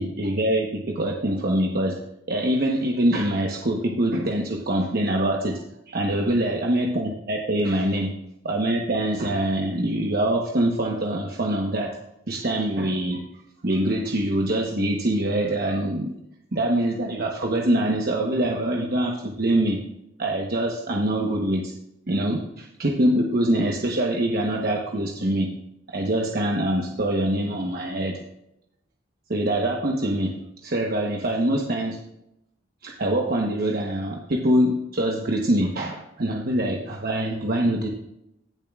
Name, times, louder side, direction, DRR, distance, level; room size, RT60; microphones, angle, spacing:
voice 1, 0.0-2.0 2.3-5.6 5.9-8.1 8.4-12.0 12.3-13.2 13.6-16.1 16.5-19.8 20.2-21.7 22.1-25.5 25.9-28.2 29.3-30.3 30.6-32.0 32.8-37.9, right 1 dB, 55° right, 0 dB, 1.1 m, -24 dB
16.5 x 7.2 x 2.4 m, 0.81 s
head